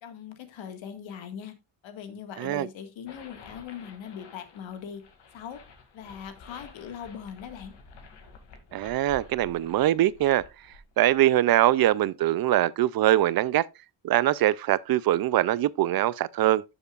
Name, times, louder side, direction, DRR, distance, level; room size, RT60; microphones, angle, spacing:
voice 1, 0.0-1.5 1.8-5.0 5.3-5.6 5.9-7.7, left 8 dB, 75° left, 1.8 m, -40 dB
sound 1, 3.1-11.1, left 4 dB, 60° left, 2.3 m, -51 dB
voice 2, 8.7-10.4 11.0-13.7 14.0-16.6, right 13 dB, 55° right, 0.4 m, -23 dB
12.0 x 7.0 x 2.4 m
cardioid pair, 135°, 46 cm